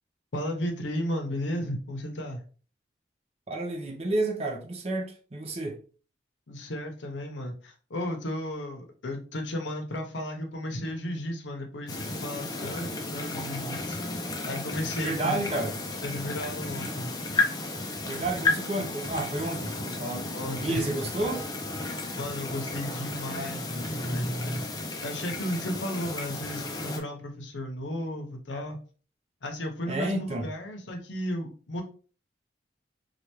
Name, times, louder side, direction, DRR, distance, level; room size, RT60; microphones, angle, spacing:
voice 1, 0.3-2.4 6.5-14.0 14.4-15.6 16.0-17.1 20.3-20.8 22.2-28.8 29.4-31.8, left 1 dB, 80° left, 0.8 m, -34 dB
voice 2, 3.5-5.8 15.0-15.7 18.0-20.3 20.6-21.4 29.9-30.5, right 2 dB, 35° right, 0.5 m, -30 dB
sound 1, 11.9-27.0, left 2 dB, 20° left, 0.4 m, -33 dB
3.3 x 2.4 x 2.9 m
head